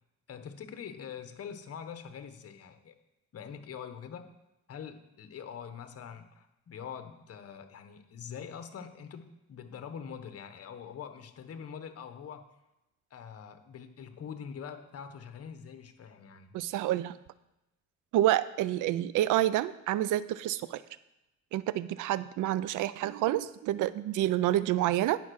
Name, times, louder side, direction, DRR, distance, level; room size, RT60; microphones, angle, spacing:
voice 1, 0.3-2.9 3.3-4.3 4.7-12.4 13.1-16.6, left 7 dB, 50° left, 9 dB, 1.1 m, -44 dB
voice 2, 16.5-17.1 18.1-20.8 21.5-25.2, right 13 dB, 85° right, 16 dB, 0.5 m, -28 dB
9.4 x 5.3 x 6.3 m, 0.91 s
cardioid pair, 90°, 30 cm